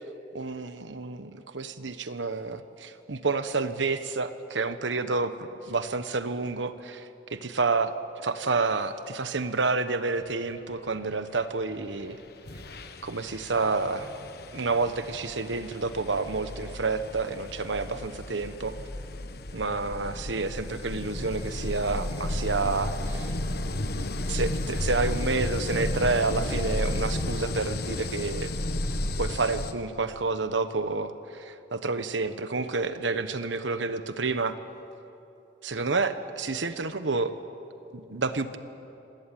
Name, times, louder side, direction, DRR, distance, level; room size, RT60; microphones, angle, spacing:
voice 1, 0.3-4.3 4.5-12.2 13.0-14.1 14.5-18.8 19.5-23.3 24.3-28.5 29.2-34.5 35.6-37.3 37.9-38.6, right 3 dB, 90° right, 11 dB, 1.2 m, -29 dB
sound 1, 11.9-12.1 12.4-29.7, left 1 dB, 55° left, 1.2 m, -33 dB
26.0 x 17.5 x 9.3 m, 2.9 s
head